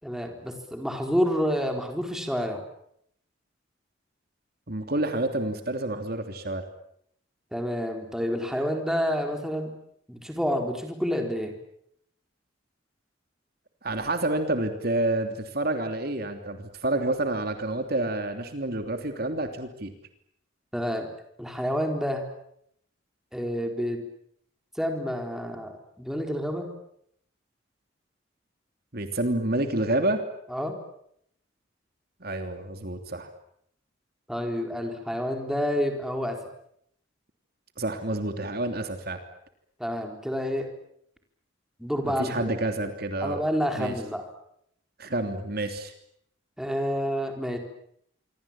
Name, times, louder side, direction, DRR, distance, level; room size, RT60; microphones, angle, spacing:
voice 1, 0.0-2.6 7.5-9.7 10.1-11.5 20.7-21.1 21.4-22.3 23.3-24.0 24.8-26.7 30.5-30.8 34.3-36.4 39.8-40.7 41.8-42.5 43.2-44.2 46.6-47.6, equal, ahead, 3 dB, 4.3 m, -29 dB
voice 2, 4.7-6.6 13.8-19.9 28.9-30.2 32.2-33.3 37.8-39.2 42.0-43.4 43.7-43.9 45.0-45.9, right 2 dB, 50° right, 6 dB, 3.1 m, -28 dB
27.0 x 24.0 x 8.8 m, 0.72 s
head